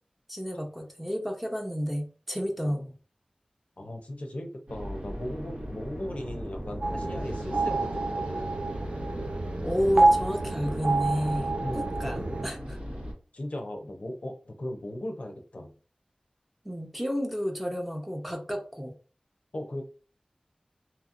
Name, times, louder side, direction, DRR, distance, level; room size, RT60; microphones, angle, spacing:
voice 1, 0.3-2.9 9.6-12.8 16.6-18.9, equal, 5° right, 2 dB, 0.7 m, -31 dB
voice 2, 3.8-8.7 11.6-12.3 13.3-15.7 19.5-19.8, left 1 dB, 60° left, 3 dB, 0.6 m, -38 dB
sound 1, 4.7-13.1, equal, 85° right, 1.2 m, -38 dB
sound 2, 6.8-12.4, right 2 dB, 50° right, 0.4 m, -28 dB
2.8 x 2.7 x 2.5 m, 0.38 s
wide cardioid pair, 50°, 2 cm